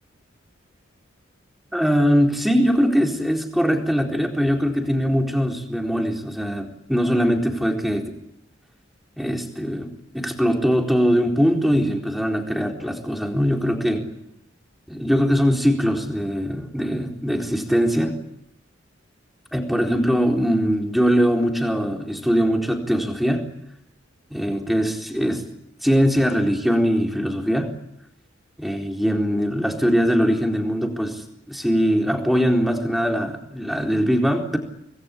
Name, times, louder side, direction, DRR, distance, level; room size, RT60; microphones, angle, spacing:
voice 1, 1.7-8.1 9.2-9.9 10.1-14.1 14.9-18.1 19.5-23.5 24.3-25.4 25.8-27.7 28.6-34.6, equal, ahead, 2 dB, 4.0 m, -21 dB
26.5 x 20.5 x 10.0 m, 0.77 s
head